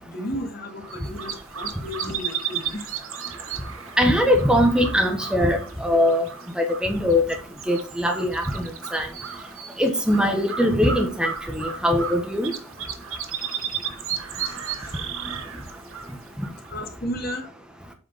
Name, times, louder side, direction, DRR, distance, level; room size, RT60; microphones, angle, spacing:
voice 1, 0.0-2.9 14.4-15.0 16.7-17.5, equal, 45° left, 3 dB, 2.3 m, -34 dB
sound 1, 0.8-16.9, right 7 dB, 80° right, 1.2 m, -34 dB
voice 2, 4.0-6.2 6.6-7.2 7.7-9.1 9.8-12.5, left 1 dB, 5° right, 3 dB, 1.2 m, -21 dB
7.9 x 4.9 x 5.6 m, 0.36 s
head